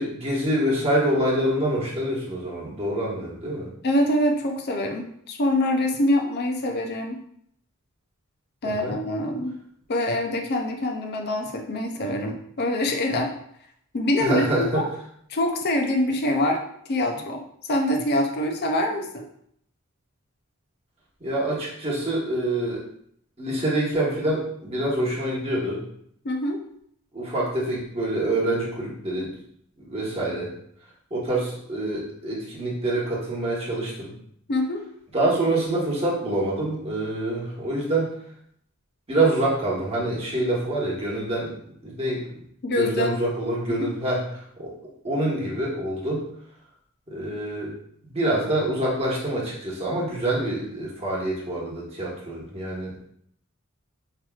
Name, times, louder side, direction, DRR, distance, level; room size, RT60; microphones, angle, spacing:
voice 1, 0.0-3.7 8.6-8.9 14.2-14.8 21.2-22.8 23.4-25.8 27.1-29.3 29.8-30.5 31.1-34.1 35.1-38.1 39.1-41.5 41.8-42.3 42.8-44.7 45.0-46.3 47.1-47.7 48.1-52.9, right 1 dB, 30° right, -5 dB, 1.2 m, -26 dB
voice 2, 3.8-7.2 8.6-9.6 9.9-13.3 13.9-14.9 15.3-16.6 16.9-19.3 26.2-26.6 34.5-34.8 42.6-43.2 43.8-43.9, left 1 dB, 50° left, 3 dB, 0.5 m, -25 dB
5.7 x 3.0 x 2.3 m, 0.68 s
head